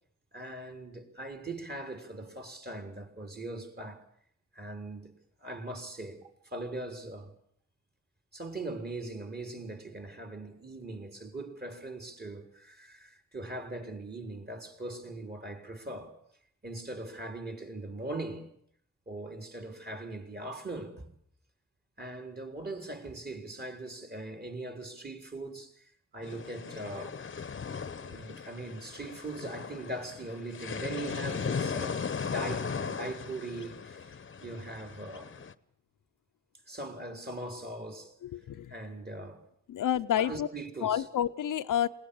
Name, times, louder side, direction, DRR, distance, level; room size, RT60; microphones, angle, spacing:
voice 1, 0.3-4.0 4.5-5.1 5.4-7.3 8.3-16.2 16.6-18.5 19.1-21.1 22.0-25.9 26.1-27.2 27.9-34.2 34.4-35.4 36.7-38.1 38.7-39.4 40.2-41.0, right 2 dB, 30° right, 4.0 m, -40 dB
sound 1, 26.2-35.5, left 6 dB, 40° left, 1.0 m, -37 dB
voice 2, 38.2-38.7 39.7-40.5 40.8-41.9, left 10 dB, 85° left, 0.8 m, -29 dB
20.5 x 18.5 x 8.5 m
cardioid pair, 75°, 31 cm